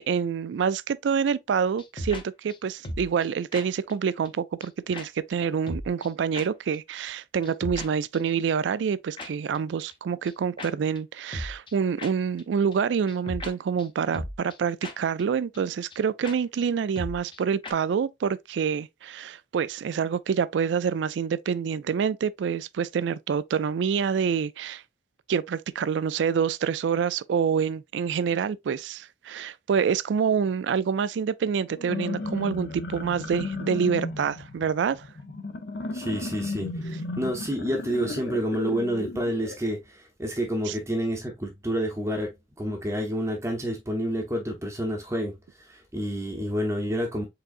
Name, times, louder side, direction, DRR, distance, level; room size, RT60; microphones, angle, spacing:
voice 1, 0.0-24.8 25.3-35.1 40.7-40.8, right 6 dB, 75° right, 0.3 m, -27 dB
sound 1, 1.8-2.2 2.5-2.6 2.8-3.3 3.5-3.6 3.9-4.0 4.2-4.3 4.6-4.7 4.9-5.1 5.3-5.4 5.7-6.1 6.3-6.5 6.7-6.8 7.1-7.2 7.4-7.9 8.1-8.2 9.2-9.3 9.5-9.6 9.9-10.0 10.3-10.4 10.6-10.7 11.0-11.1 11.3-11.7 12.0-12.1 12.4-12.5 12.7-12.8 13.1-13.5 13.8-13.9 14.1-14.6 14.8-14.9 15.2-15.3 15.5-15.6 15.9-16.0 16.2-16.3 16.6-16.7 17.0-17.4 17.6-17.7, left 1 dB, 30° left, 0.7 m, -36 dB
sound 2, 31.7-39.5, left 3 dB, 60° left, 0.7 m, -34 dB
voice 2, 35.9-47.2, equal, 15° right, 0.7 m, -29 dB
4.8 x 3.7 x 2.5 m
head